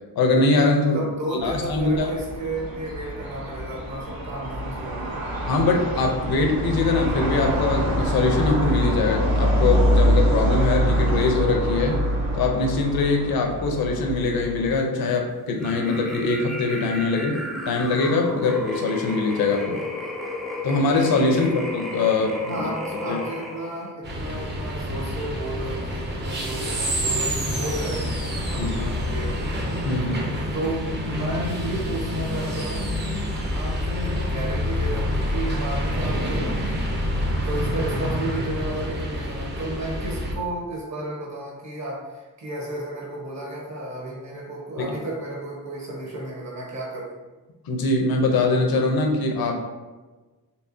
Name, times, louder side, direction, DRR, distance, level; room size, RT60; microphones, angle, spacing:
voice 1, 0.2-1.0 1.4-2.1 5.5-12.0 12.3-17.4 17.7-19.8 20.6-22.7 23.1-23.2 28.6-28.9 29.8-30.3 44.8-44.9 47.6-49.5, left 3 dB, 75° left, 2 dB, 0.7 m, -22 dB
voice 2, 0.8-5.2 21.4-21.6 22.5-28.2 28.5-29.3 30.5-37.0 37.4-47.1, right 1 dB, 50° right, -3 dB, 1.3 m, -33 dB
sound 1, 1.4-14.7, equal, 70° right, 1.0 m, -25 dB
sound 2, 15.6-23.9, left 1 dB, ahead, 0.4 m, -33 dB
sound 3, 24.0-40.3, equal, 30° right, 0.7 m, -27 dB
4.6 x 3.3 x 2.7 m, 1.2 s
wide cardioid pair, 155°, 36 cm